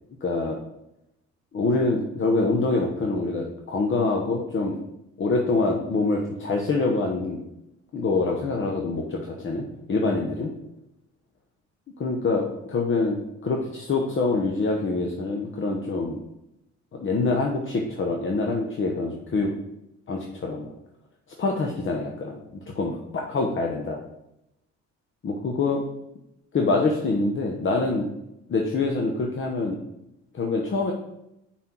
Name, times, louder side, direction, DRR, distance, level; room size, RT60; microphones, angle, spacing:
voice 1, 0.2-0.6 1.5-4.8 5.2-7.4 7.9-10.5 12.0-16.2 16.9-19.5 20.1-20.7 21.4-22.4 22.7-24.0 25.2-25.8 26.5-28.1 28.5-29.8 30.3-30.9, left 3 dB, 40° left, 1 dB, 1.0 m, -25 dB
5.7 x 4.2 x 6.0 m, 0.86 s
cardioid pair, 90°, 30 cm